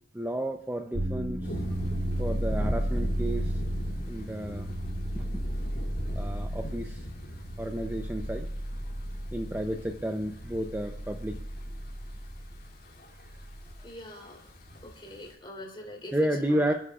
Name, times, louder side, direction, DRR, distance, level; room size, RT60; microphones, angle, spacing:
voice 1, 0.1-1.5 2.2-3.6 4.1-4.7 5.1-5.2 6.2-7.1 7.6-8.5 9.3-11.4 16.1-16.7, right 1 dB, 10° right, 4 dB, 0.6 m, -31 dB
sound 1, 0.9-13.7, equal, 65° right, 5.0 m, -34 dB
sound 2, 1.4-15.3, equal, 60° left, 2.9 m, -42 dB
voice 2, 13.8-14.4 14.8-16.2 16.5-16.7, left 1 dB, 30° left, 0 dB, 3.5 m, -44 dB
27.5 x 9.9 x 2.5 m, 0.69 s
head